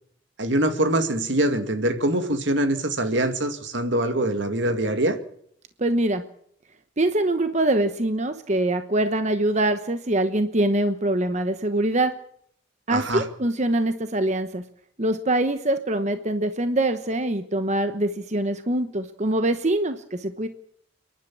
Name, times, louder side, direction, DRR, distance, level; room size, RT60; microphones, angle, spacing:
voice 1, 0.4-5.2 12.9-13.3, right 1 dB, 75° right, 7 dB, 2.3 m, -23 dB
voice 2, 5.8-6.2 7.0-12.1 12.9-14.6 15.0-20.5, right 1 dB, 40° right, 8 dB, 1.0 m, -24 dB
29.5 x 11.5 x 8.6 m, 0.67 s
head